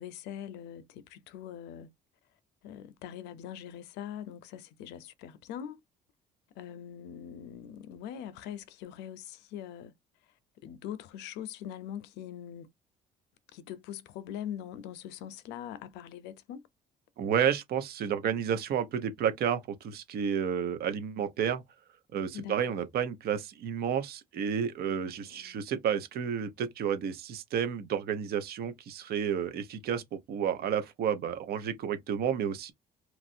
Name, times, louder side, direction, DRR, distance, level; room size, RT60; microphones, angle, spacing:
voice 1, 0.0-1.9 2.6-5.8 6.6-9.9 10.6-12.7 13.5-16.6 22.3-22.8 24.9-25.6, left 10 dB, 90° left, 0.5 m, -42 dB
voice 2, 17.2-21.6 22.1-32.7, right 8 dB, 65° right, 0.8 m, -31 dB
3.0 x 2.4 x 2.6 m
cardioid pair, 110°, 17 cm